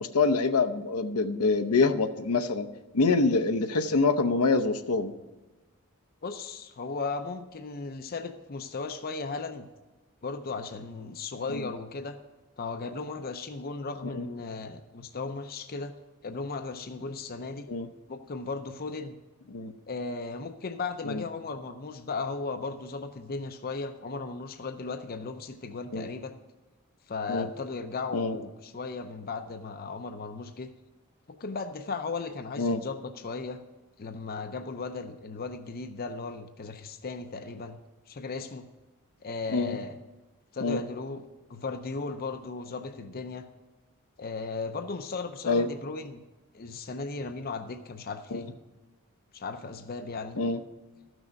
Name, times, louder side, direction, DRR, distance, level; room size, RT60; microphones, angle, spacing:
voice 1, 0.1-2.7 2.9-5.1 11.5-11.7 14.2-14.3 17.7-17.9 19.5-19.7 21.1-21.2 25.9-26.1 27.3-27.5 28.1-28.3 32.6-32.8 39.5-39.8 40.6-40.8 45.5-45.7 48.3-48.4 50.4-50.6, left 3 dB, 80° left, 6 dB, 0.8 m, -25 dB
voice 2, 6.2-9.7 10.2-12.2 12.6-15.9 16.2-17.7 18.1-19.2 19.9-26.4 27.1-30.7 31.3-33.6 34.0-37.8 38.1-38.7 39.2-40.0 40.5-43.5 44.2-46.2 46.5-48.5 49.3-50.4, left 4 dB, 45° left, 8 dB, 0.6 m, -36 dB
13.5 x 6.3 x 5.2 m, 1.2 s
head